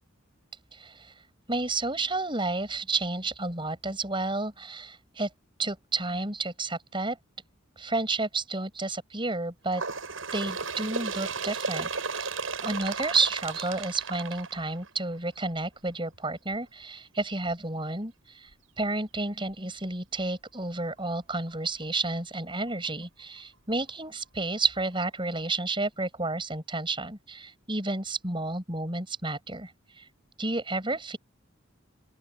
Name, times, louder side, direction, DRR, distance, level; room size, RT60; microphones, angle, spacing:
voice 1, 0.7-1.1 1.5-5.3 5.6-7.2 7.8-9.8 10.3-12.3 12.6-18.1 18.4-18.5 18.8-29.7 30.0-30.1 30.4-31.2, right 3 dB, 25° right, 7.2 m, -31 dB
Bird, 9.7-15.2 16.0-16.2 16.5-16.6 17.5-17.6 18.5-18.6 19.5-19.6, right 4 dB, 75° right, 7.8 m, -34 dB
open air
head